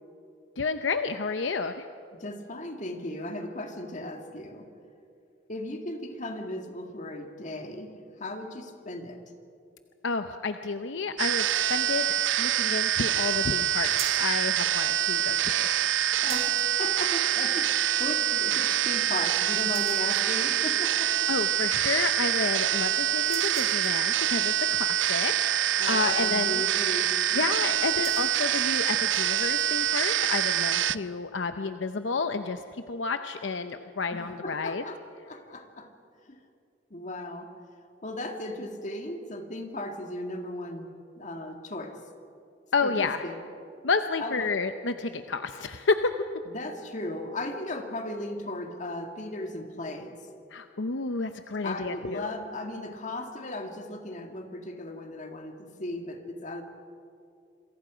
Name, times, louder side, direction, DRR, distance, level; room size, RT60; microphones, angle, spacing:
voice 1, 0.6-1.9 10.0-12.1 12.4-15.7 21.3-26.6 27.3-34.8 42.7-43.2 43.8-46.1 50.5-52.3, left 4 dB, 70° left, 8 dB, 0.8 m, -30 dB
voice 2, 2.2-4.7 5.5-9.2 16.2-21.3 25.8-27.1 34.1-35.9 36.3-36.4 36.9-37.5 38.0-40.9 41.2-42.0 42.8-43.4 44.2-44.6 46.5-50.2 51.6-56.6, left 1 dB, 40° left, 4 dB, 2.0 m, -36 dB
sound 1, 11.2-31.0, right 11 dB, 75° right, 0.5 m, -26 dB
sound 2, 13.8-14.3 16.1-16.7 18.0-18.1 18.6-18.7 19.1-19.3 19.6-20.1 21.5-21.6 21.9-22.6 23.2-24.1 26.4-26.7 27.0-27.3 27.8-28.3 29.0-29.5, right 6 dB, 35° right, 3.4 m, -43 dB
27.5 x 22.5 x 5.1 m, 2.5 s
head